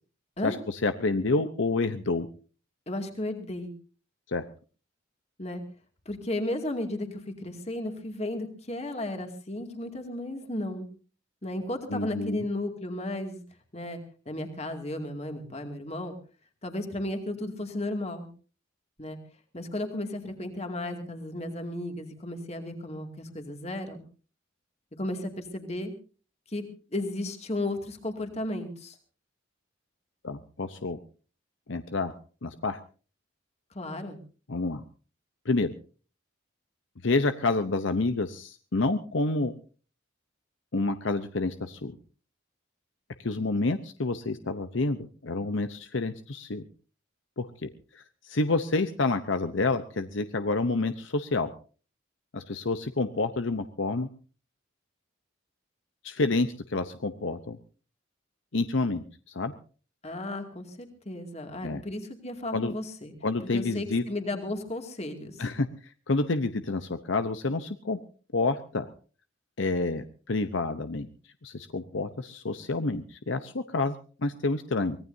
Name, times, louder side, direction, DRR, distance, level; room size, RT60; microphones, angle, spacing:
voice 1, 0.4-2.3 4.3-4.4 11.9-12.4 30.2-31.0 31.7-32.1 32.4-32.8 34.5-34.8 35.4-35.7 37.0-39.5 40.7-41.9 43.2-46.6 47.4-51.5 52.3-54.1 56.0-57.6 58.5-59.5 61.6-61.8 62.5-62.7 63.2-64.0 65.4-65.7 66.1-68.0 68.3-68.8 69.6-71.1 71.4-75.0, left 3 dB, 70° left, 10 dB, 0.8 m, -28 dB
voice 2, 2.9-3.7 5.4-5.6 6.1-10.9 11.4-13.4 13.7-14.0 14.3-16.1 16.6-18.3 19.0-19.2 19.5-24.0 25.0-25.9 26.5-26.6 26.9-29.0 33.7-34.2 60.0-63.1 63.5-65.5, left 1 dB, 30° left, 5 dB, 2.4 m, -34 dB
24.0 x 18.5 x 2.7 m, 0.38 s
head